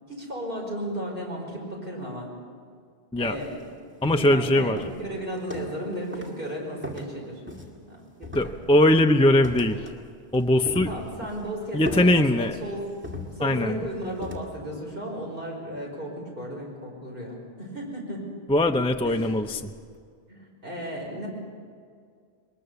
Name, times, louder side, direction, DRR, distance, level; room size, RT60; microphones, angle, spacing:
voice 1, 0.1-2.3 3.2-3.6 4.2-7.4 7.9-8.5 10.8-13.0 13.4-18.2 19.0-19.4 20.3-21.3, equal, 50° right, -2 dB, 5.5 m, -34 dB
sound 1, 3.4-3.6 4.0-4.4 4.8-5.9 6.1-6.4 6.8-7.9 8.2-8.9 9.4-10.0 10.3-11.4 11.8-12.6 13.0-13.7 14.2-14.5, left 2 dB, 10° right, 2.1 m, -38 dB
voice 2, 4.0-4.8 8.3-9.9 10.3-10.9 11.7-12.5 13.4-13.8 18.5-19.7, left 1 dB, 5° left, 5 dB, 0.5 m, -21 dB
22.0 x 20.5 x 7.0 m, 2.1 s
omnidirectional pair, 1.1 m